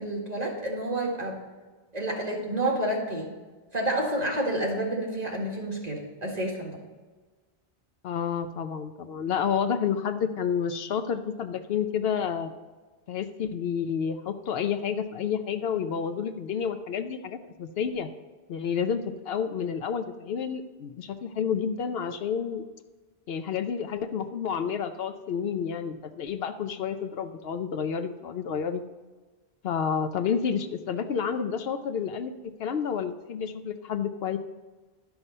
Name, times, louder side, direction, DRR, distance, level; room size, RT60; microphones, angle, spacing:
voice 1, 0.0-1.4 1.9-3.3 3.7-6.8, right 1 dB, 40° right, -2 dB, 1.9 m, -29 dB
voice 2, 8.0-12.5 13.1-18.1 18.5-22.6 23.3-28.8 29.6-32.3 32.6-34.4, left 7 dB, 70° left, 9 dB, 0.8 m, -30 dB
11.5 x 5.8 x 5.4 m, 1.3 s
omnidirectional pair, 1.1 m